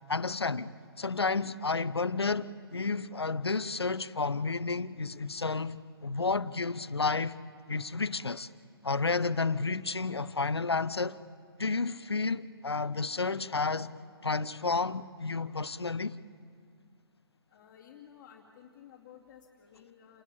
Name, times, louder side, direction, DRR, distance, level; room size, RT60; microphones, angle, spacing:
voice 1, 0.1-7.4 7.7-8.5 8.8-11.2 11.6-13.9 14.2-16.2, left 4 dB, 75° left, 0.8 m, -31 dB
voice 2, 17.5-20.2, left 9 dB, 25° left, 2.4 m, -54 dB
28.0 x 20.5 x 8.5 m
figure-of-eight pair, 130°, 13 cm